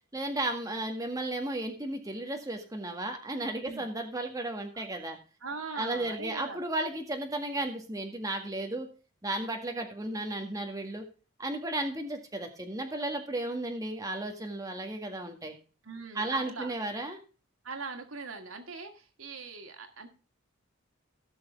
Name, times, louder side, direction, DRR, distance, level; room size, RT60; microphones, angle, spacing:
voice 1, 0.1-5.2 5.7-8.9 9.2-11.0 11.4-15.5 16.1-17.2, right 2 dB, 15° right, 3 dB, 1.8 m, -34 dB
voice 2, 5.4-6.6 15.8-16.7 17.6-20.1, right 4 dB, 85° right, 5 dB, 2.1 m, -41 dB
17.5 x 6.4 x 3.5 m, 0.35 s
head